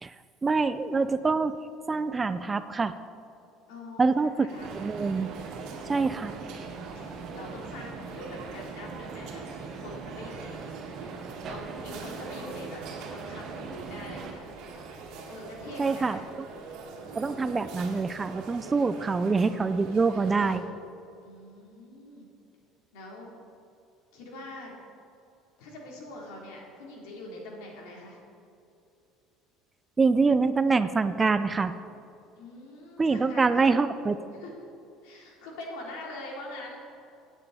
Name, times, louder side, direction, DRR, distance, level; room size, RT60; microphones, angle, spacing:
voice 1, 0.4-1.6 1.9-3.0 4.0-4.5 4.7-5.3 5.9-6.4 15.8-16.2 17.2-20.6 30.0-31.7 33.0-34.1, right 4 dB, 15° right, 12 dB, 0.3 m, -25 dB
voice 2, 3.7-4.7 6.3-11.1 11.5-12.8 13.1-14.4 15.2-16.2 21.2-22.3 22.9-23.3 24.1-24.7 25.6-28.2 32.4-33.7 34.3-34.6 35.0-36.8, left 1 dB, 90° left, -2 dB, 3.3 m, -43 dB
sound 1, 4.5-20.6, right 4 dB, 55° right, 2.1 m, -44 dB
sound 2, 4.6-14.3, right 5 dB, 30° right, 1.1 m, -41 dB
17.0 x 8.9 x 4.2 m, 2.7 s
cardioid pair, 170°, 0 cm